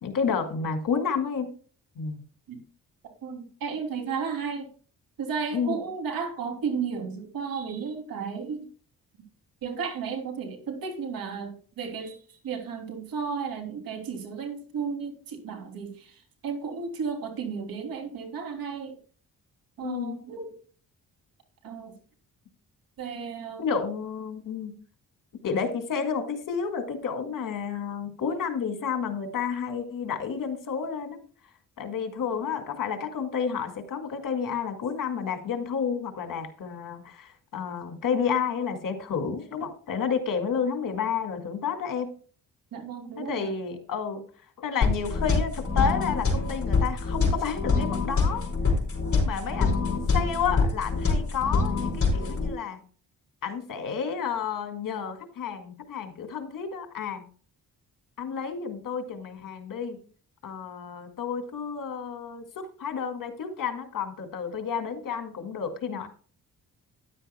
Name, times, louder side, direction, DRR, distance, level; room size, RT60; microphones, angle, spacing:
voice 1, 0.0-1.5 2.0-2.2 5.5-5.8 19.8-20.2 23.6-24.7 25.4-31.2 31.8-42.1 43.2-44.2 44.6-48.4 49.1-52.8 53.4-57.2 58.2-60.0 60.4-66.1, left 6 dB, 70° left, 7 dB, 2.2 m, -31 dB
voice 2, 3.2-4.7 5.2-8.7 9.6-19.0 19.8-20.5 21.6-22.0 23.0-23.6 42.7-43.5, right 6 dB, 80° right, 4 dB, 3.0 m, -34 dB
sound 1, 44.8-52.5, left 4 dB, 40° left, 4.7 m, -25 dB
13.5 x 10.5 x 2.2 m, 0.41 s
cardioid pair, 80°, 34 cm